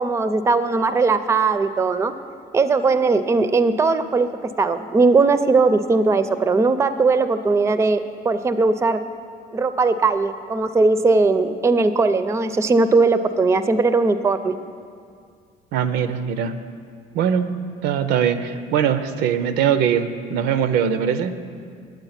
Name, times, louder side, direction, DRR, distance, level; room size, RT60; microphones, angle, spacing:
voice 1, 0.0-2.1 2.5-4.3 4.6-9.0 9.5-14.5, right 3 dB, 15° right, 11 dB, 0.4 m, -19 dB
voice 2, 15.7-16.5 17.1-17.5 17.8-21.3, right 8 dB, 85° right, 11 dB, 0.5 m, -21 dB
9.0 x 7.4 x 5.7 m, 2.2 s
cardioid pair, 110°, 17 cm